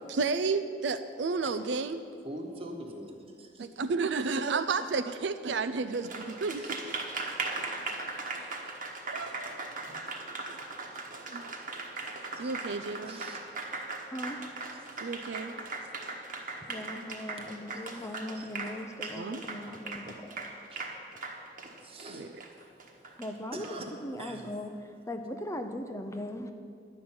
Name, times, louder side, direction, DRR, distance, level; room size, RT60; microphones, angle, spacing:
voice 1, 0.1-2.0 3.6-7.0 8.4-8.7 9.1-9.8 11.3-11.4 12.4-13.2 15.0-15.6 19.2-19.4 22.1-22.3, right 4 dB, 75° right, 9 dB, 0.4 m, -32 dB
voice 2, 2.2-3.5 5.5-5.6 6.5-6.8 12.4-12.6 13.1-13.4 18.3-18.5 19.1-19.2 21.8-22.2 23.5-23.9 24.2-24.5, right 1 dB, 30° right, 2 dB, 1.3 m, -43 dB
Applause, 5.9-23.7, right 3 dB, 50° right, 1.3 m, -38 dB
voice 3, 16.4-20.5 23.2-23.6 24.0-24.7 25.1-26.5, left 1 dB, 15° left, 6 dB, 0.5 m, -39 dB
11.0 x 5.9 x 8.5 m, 2.3 s
head